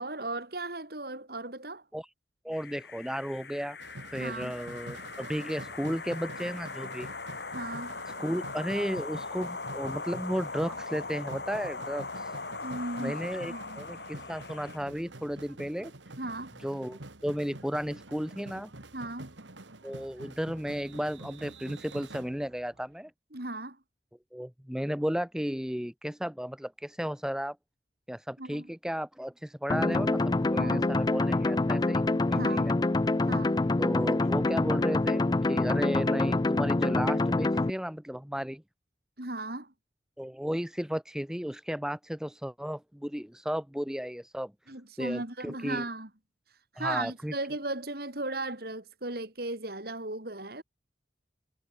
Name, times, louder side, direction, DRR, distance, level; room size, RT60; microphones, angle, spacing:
voice 1, 0.0-1.8 4.2-4.5 7.5-8.0 12.6-13.2 13.5-13.8 16.2-16.5 18.9-19.4 23.3-23.8 28.4-28.7 30.5-30.9 32.3-32.7 33.3-33.6 39.2-39.7 44.7-46.1 46.7-50.6, right 2 dB, 55° right, 3.7 m, -36 dB
voice 2, 2.4-3.8 4.1-7.1 8.2-12.3 13.0-15.9 16.6-18.7 19.8-23.1 24.3-27.6 28.1-32.7 33.8-38.6 40.2-44.5 45.0-45.8 46.8-47.3, equal, 5° right, 0.8 m, -34 dB
sound 1, 2.5-14.8, left 3 dB, 60° left, 3.3 m, -40 dB
sound 2, 3.8-22.8, right 2 dB, 80° right, 2.4 m, -47 dB
sound 3, 29.7-37.7, left 2 dB, 20° left, 0.4 m, -26 dB
head